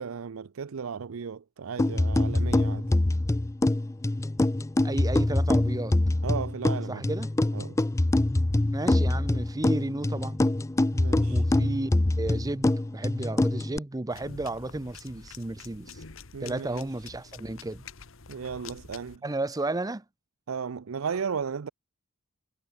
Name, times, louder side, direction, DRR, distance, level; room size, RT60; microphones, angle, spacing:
voice 1, 0.0-2.9 6.2-7.0 7.5-7.8 10.9-11.4 16.3-16.8 18.3-19.2 20.5-21.7, right 6 dB, 90° right, 0.5 m, -35 dB
sound 1, 1.8-13.8, left 1 dB, 15° left, 0.4 m, -25 dB
voice 2, 4.8-5.9 6.9-7.3 8.6-10.5 11.3-11.9 12.2-16.0 16.4-17.9 19.2-20.0, right 2 dB, 20° right, 0.7 m, -33 dB
sound 2, 14.1-19.2, left 5 dB, 70° left, 1.4 m, -47 dB
head